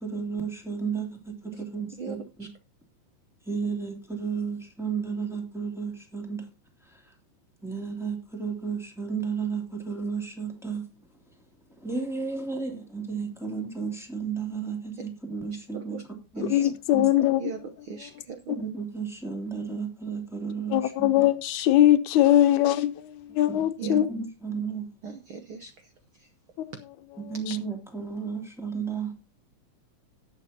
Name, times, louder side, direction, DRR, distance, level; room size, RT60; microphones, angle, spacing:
voice 1, 0.0-2.5 3.4-6.5 6.8-7.1 7.6-10.8 11.8-16.0 16.3-17.1 18.5-21.2 23.3-24.9 27.2-29.1, right 5 dB, ahead, 2.1 m, -33 dB
voice 2, 2.0-2.5 15.7-16.0 16.3-16.5 17.4-18.5 23.8-24.0 25.0-26.3, right 5 dB, 70° right, 1.2 m, -39 dB
voice 3, 16.5-17.4 20.7-24.1 27.5-27.6, left 13 dB, 80° left, 2.2 m, -21 dB
18.0 x 7.4 x 2.8 m
omnidirectional pair, 3.5 m